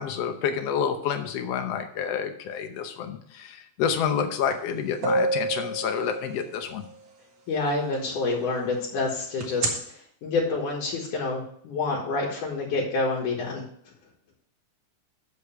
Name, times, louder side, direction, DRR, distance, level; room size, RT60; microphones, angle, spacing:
voice 1, 0.0-6.8, left 7 dB, 65° left, 7 dB, 1.7 m, -28 dB
sound 1, 4.5-4.6 5.0-6.8 9.4-9.7, right 2 dB, 50° right, 1.9 m, -27 dB
voice 2, 7.5-13.6, left 3 dB, 90° left, -4 dB, 3.1 m, -28 dB
6.9 x 6.5 x 5.7 m, 0.62 s
omnidirectional pair, 3.5 m